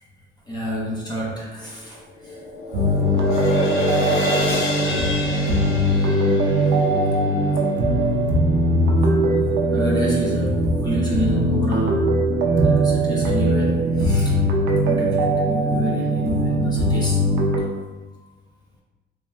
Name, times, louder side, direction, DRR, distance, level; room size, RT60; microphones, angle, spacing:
voice 1, 0.5-2.0 9.7-12.1 12.6-14.5 14.8-17.8, equal, 20° left, -4 dB, 0.6 m, -28 dB
sound 1, 1.7-8.0, left 1 dB, 80° left, 0.7 m, -28 dB
sound 2, 2.7-17.6, right 1 dB, 65° right, 0.5 m, -20 dB
3.1 x 2.2 x 2.3 m, 1.1 s
cardioid pair, 90°, 20 cm